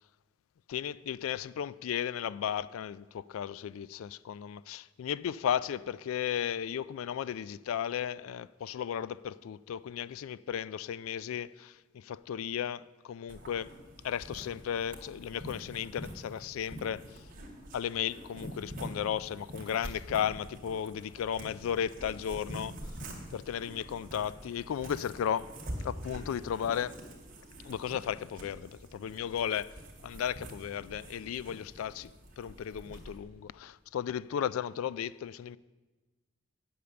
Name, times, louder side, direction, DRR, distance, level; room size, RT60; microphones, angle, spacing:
voice 1, 0.7-13.7 14.0-17.2 17.7-22.7 23.3-25.5 25.8-27.0 27.6-29.7 30.0-32.1 32.4-35.6, left 9 dB, 90° left, 0.3 m, -35 dB
sound 1, 13.3-33.2, equal, 45° right, 2.3 m, -46 dB
9.5 x 8.5 x 6.9 m
head